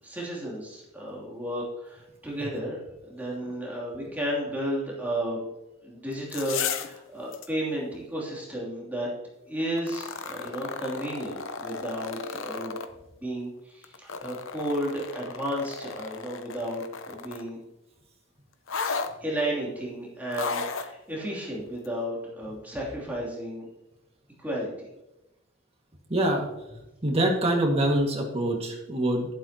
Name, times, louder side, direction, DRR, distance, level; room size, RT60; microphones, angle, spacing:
voice 1, 0.0-5.4 5.8-9.1 9.4-12.8 13.2-17.6 19.2-23.7 24.4-24.7, equal, 10° right, -5 dB, 2.9 m, -33 dB
sound 1, 6.1-7.0 7.3-7.5 9.8-12.9 13.8-17.5 18.7-19.1 20.3-20.9 21.8-21.9, left 5 dB, 80° left, 0.8 m, -34 dB
voice 2, 26.1-29.3, right 1 dB, 30° right, 0 dB, 1.9 m, -25 dB
11.5 x 11.5 x 2.9 m, 0.92 s
head